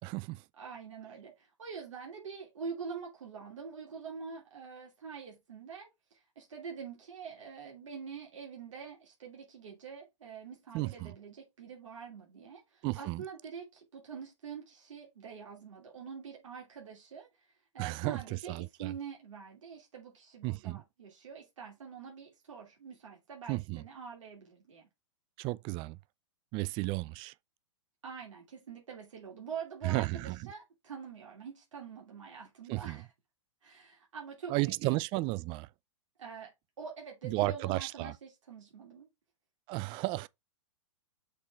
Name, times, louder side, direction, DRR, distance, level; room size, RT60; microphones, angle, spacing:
voice 1, 0.0-0.4 10.7-11.1 12.8-13.2 17.8-18.9 20.4-20.8 23.5-23.9 25.4-26.0 26.5-27.3 29.8-30.5 32.7-33.1 34.5-35.7 37.2-38.1 39.7-40.3, right 21 dB, 30° right, 0.4 m, -33 dB
voice 2, 0.6-1.3 1.6-5.9 6.4-12.6 12.9-17.3 17.7-24.8 28.0-33.0 33.6-34.9 36.2-36.5 36.8-39.1, right 6 dB, 80° right, 2.8 m, -45 dB
6.5 x 3.8 x 4.6 m
hypercardioid pair, 120°, 16 cm